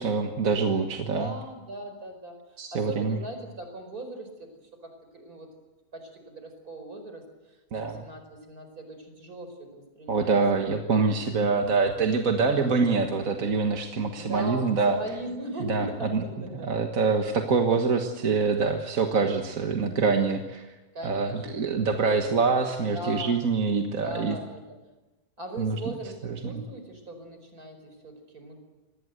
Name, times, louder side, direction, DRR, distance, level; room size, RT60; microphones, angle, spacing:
voice 1, 0.0-1.3 2.6-3.2 7.7-8.0 10.1-15.0 15.6-16.2 16.6-20.7 21.0-24.4 25.6-25.8 26.4-26.6, right 4 dB, 65° right, 4 dB, 1.9 m, -25 dB
voice 2, 1.1-2.4 2.7-4.5 4.8-5.5 5.9-10.4 12.3-12.7 14.2-16.7 20.9-21.7 22.5-23.5 23.7-24.8 25.4-28.6, right 1 dB, 90° right, 6 dB, 5.4 m, -39 dB
26.0 x 20.0 x 8.0 m, 1.1 s
omnidirectional pair, 1.5 m